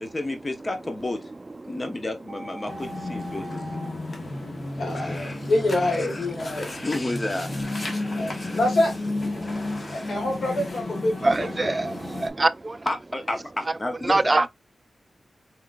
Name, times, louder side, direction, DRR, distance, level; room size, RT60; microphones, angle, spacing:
voice 1, 0.0-1.3 1.7-3.6 4.9-8.6 9.4-10.1 12.9-14.5, left 2 dB, 25° left, 0.8 m, -32 dB
sound 1, 2.3-3.9, right 2 dB, 65° right, 0.7 m, -40 dB
sound 2, 2.7-12.3, left 2 dB, 45° left, 1.2 m, -33 dB
voice 2, 4.8-6.7 8.2-8.9 9.9-11.5, left 1 dB, 75° left, 1.7 m, -26 dB
voice 3, 11.2-12.8 13.7-13.8 14.0-14.5, right 2 dB, 30° right, 0.3 m, -23 dB
4.3 x 3.8 x 2.5 m
wide cardioid pair, 105°, 0 cm